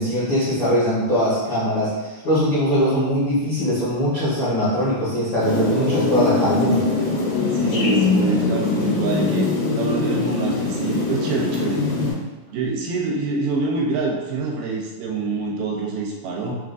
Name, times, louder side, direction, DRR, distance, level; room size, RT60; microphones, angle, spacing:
voice 1, 0.0-6.8, equal, 65° left, -12 dB, 1.2 m, -21 dB
sound 1, 5.4-12.1, left 3 dB, 85° left, 2.9 m, -22 dB
voice 2, 7.5-9.5 9.8-11.8 12.5-16.5, right 3 dB, 85° right, -2 dB, 2.3 m, -25 dB
6.0 x 2.4 x 2.5 m, 1.2 s
omnidirectional pair, 3.9 m